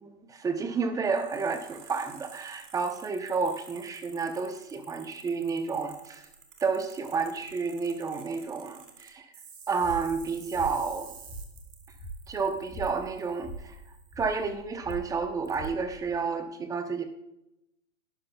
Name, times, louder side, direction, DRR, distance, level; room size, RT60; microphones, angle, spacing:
voice 1, 0.0-6.3 6.6-9.3 9.7-11.1 12.3-13.8 14.2-17.0, right 5 dB, 10° right, 8 dB, 0.7 m, -30 dB
sound 1, 1.0-14.4 14.9-15.0 15.4-15.7, right 6 dB, 75° right, 2.2 m, -52 dB
sound 2, 9.8-16.2, right 1 dB, 15° left, 4.2 m, -43 dB
12.0 x 11.0 x 2.3 m, 0.84 s
hypercardioid pair, 125°, 38 cm